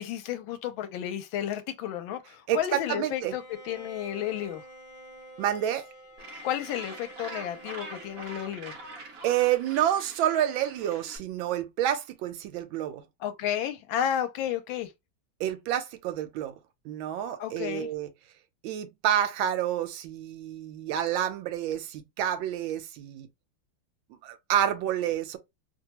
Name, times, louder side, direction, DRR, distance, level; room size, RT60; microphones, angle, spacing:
voice 1, 0.0-4.6 6.4-8.8 13.2-14.9 17.4-17.9, left 10 dB, 85° left, 1.4 m, -32 dB
voice 2, 2.5-3.3 5.4-5.8 9.2-13.0 15.4-16.5 16.8-18.1 18.6-23.3 24.2-25.4, right 11 dB, 80° right, 1.3 m, -28 dB
Bowed string instrument, 3.3-9.3, equal, 35° left, 0.7 m, -48 dB
Gull seagull, 6.2-11.2, right 3 dB, 60° right, 0.9 m, -44 dB
3.1 x 2.2 x 2.8 m
omnidirectional pair, 2.2 m